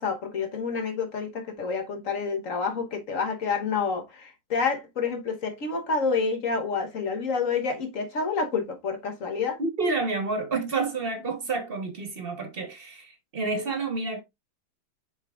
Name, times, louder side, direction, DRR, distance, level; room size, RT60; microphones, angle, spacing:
voice 1, 0.0-9.6, left 5 dB, 45° left, 1.4 m, -28 dB
voice 2, 9.6-14.2, right 3 dB, 30° right, 1.3 m, -29 dB
6.8 x 5.7 x 2.4 m
omnidirectional pair, 2.1 m